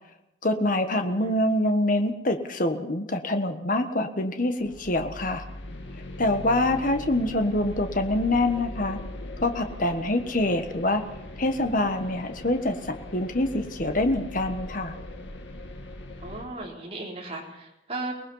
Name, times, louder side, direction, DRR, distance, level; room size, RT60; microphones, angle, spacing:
voice 1, 0.4-5.4 6.2-9.0 9.4-11.0 11.4-14.9, left 1 dB, 45° left, 6 dB, 1.3 m, -25 dB
voice 2, 1.0-1.3 16.2-18.1, right 2 dB, 30° right, -2 dB, 4.2 m, -36 dB
sound 1, 4.6-16.4, left 1 dB, 75° left, 2.4 m, -40 dB
24.5 x 19.5 x 5.6 m, 0.90 s
head